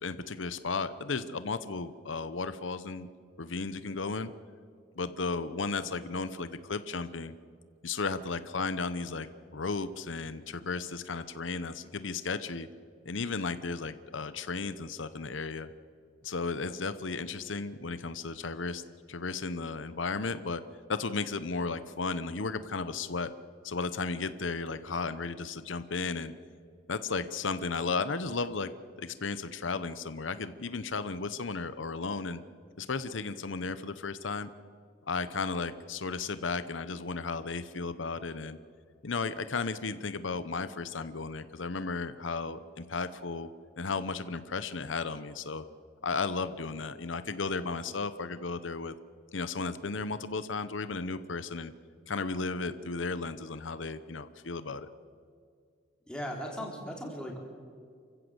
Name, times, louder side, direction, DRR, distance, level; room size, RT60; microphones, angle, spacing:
voice 1, 0.0-3.1 3.4-4.3 5.0-7.3 7.8-12.7 13.1-15.7 16.2-18.8 19.1-20.6 20.9-23.3 23.6-26.3 26.9-28.7 29.0-32.4 32.8-34.5 35.1-38.6 39.0-43.5 43.8-45.6 46.0-48.9 49.3-51.7 52.1-54.9, left 4 dB, 85° left, 13 dB, 0.9 m, -34 dB
voice 2, 56.1-57.4, equal, 5° left, -1 dB, 3.7 m, -37 dB
28.5 x 15.5 x 8.0 m, 2.2 s
head